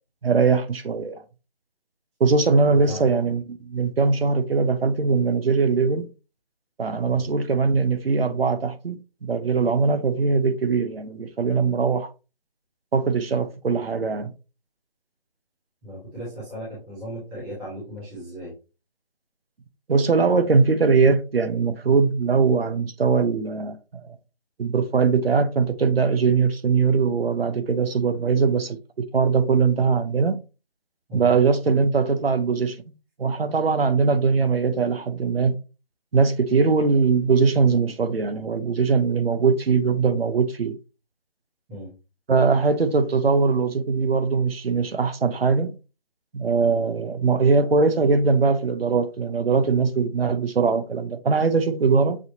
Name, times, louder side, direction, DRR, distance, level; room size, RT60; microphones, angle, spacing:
voice 1, 0.2-1.2 2.2-6.1 6.8-12.1 12.9-14.3 19.9-24.0 24.6-30.4 31.1-32.8 33.2-35.6 36.1-40.8 42.3-45.7 46.3-52.2, right 4 dB, 85° right, 0.8 m, -21 dB
voice 2, 2.7-3.1 7.1-7.3 15.8-18.5 31.1-31.3 41.7-41.9 43.2-43.3, equal, 5° right, 0.7 m, -37 dB
6.3 x 2.8 x 2.7 m
figure-of-eight pair, 165°, 29 cm